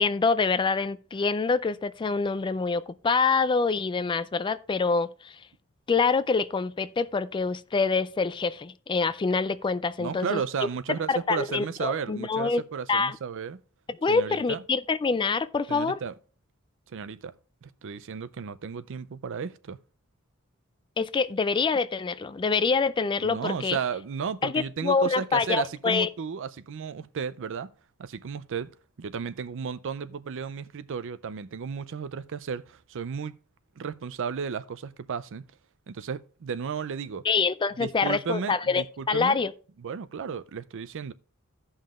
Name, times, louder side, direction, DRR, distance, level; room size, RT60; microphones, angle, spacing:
voice 1, 0.0-5.4 5.9-10.4 11.1-12.6 12.9-13.2 14.0-16.0 21.0-23.8 24.4-26.1 37.2-39.5, left 4 dB, 20° left, 0.3 m, -26 dB
voice 2, 10.0-13.6 14.1-14.6 15.7-16.1 16.9-17.3 17.6-19.8 23.2-27.7 28.0-33.4 33.8-35.5 35.9-37.2 37.8-39.4 39.8-41.1, right 6 dB, 60° right, 0.5 m, -34 dB
16.0 x 5.6 x 2.4 m
head